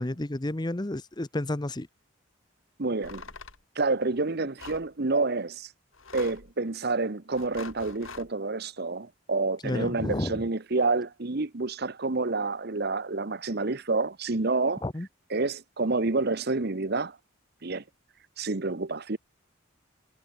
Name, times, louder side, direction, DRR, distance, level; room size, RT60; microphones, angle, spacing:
voice 1, 0.0-1.9 9.6-10.4 14.8-15.1, left 1 dB, 20° left, 0.8 m, -31 dB
voice 2, 2.8-3.2 3.8-5.7 6.1-14.8 15.3-17.2 17.6-17.8 18.4-19.2, right 3 dB, 50° right, 1.0 m, -28 dB
sound 1, 3.0-3.6 4.6-4.9 5.9-6.5 7.3-8.3, left 4 dB, 80° left, 3.1 m, -44 dB
head